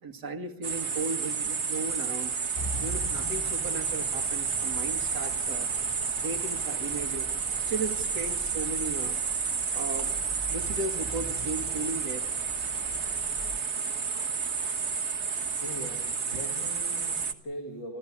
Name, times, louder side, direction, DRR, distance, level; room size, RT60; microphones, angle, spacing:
voice 1, 0.0-2.4 2.8-5.7 6.2-7.3 7.7-9.2 9.7-10.1 10.5-12.3 13.0-13.1, right 3 dB, 55° right, 4 dB, 2.5 m, -36 dB
sound 1, 0.6-17.3, right 5 dB, 40° right, 1.4 m, -31 dB
sound 2, 2.5-13.6, equal, 20° left, 1.2 m, -43 dB
voice 2, 15.6-18.0, equal, 70° left, 2 dB, 3.6 m, -41 dB
26.5 x 15.0 x 8.6 m, 0.88 s
omnidirectional pair, 2.1 m